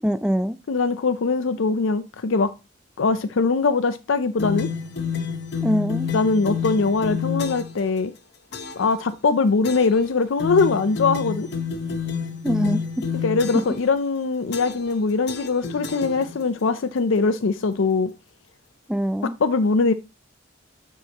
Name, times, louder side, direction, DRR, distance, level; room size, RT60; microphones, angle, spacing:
voice 1, 0.0-0.6 5.6-6.1 12.4-13.0 18.9-19.4, equal, 5° right, 0.4 m, -23 dB
voice 2, 0.7-2.5 3.0-4.7 6.1-8.1 8.8-11.5 13.2-18.1 19.4-19.9, left 4 dB, 75° left, 0.5 m, -22 dB
sound 1, 4.4-7.8 8.5-8.9 9.6-10.1 10.4-13.9 14.5-15.0 15.3-16.6, left 6 dB, 55° left, 0.9 m, -29 dB
9.5 x 4.6 x 2.9 m
head